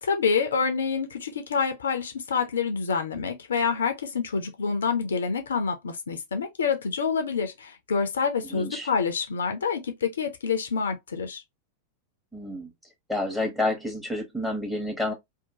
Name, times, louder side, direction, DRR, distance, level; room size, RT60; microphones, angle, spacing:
voice 1, 0.0-11.4, left 5 dB, 65° left, 0.5 m, -27 dB
voice 2, 8.5-8.9 12.3-12.7 13.1-15.1, left 2 dB, 5° right, 1.2 m, -29 dB
2.8 x 2.2 x 2.7 m
figure-of-eight pair, 90°, 0 cm